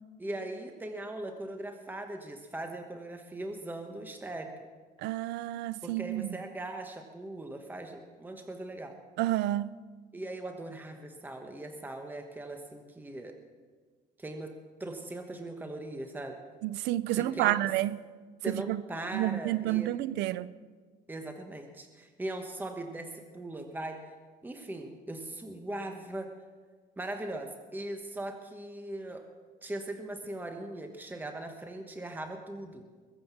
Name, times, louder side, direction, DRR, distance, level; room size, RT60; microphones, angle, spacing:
voice 1, 0.2-4.5 5.8-9.0 10.1-13.3 14.2-14.5 14.8-16.4 17.2-17.5 18.4-19.9 21.1-24.0 24.4-26.3 27.0-29.2 29.6-32.8, right 1 dB, 10° right, 1.3 m, -40 dB
voice 2, 5.0-6.3 9.2-9.8 16.6-18.0 18.5-18.8 19.1-20.5, right 15 dB, 85° right, 0.5 m, -30 dB
21.5 x 7.9 x 6.0 m
cardioid pair, 110°, 17 cm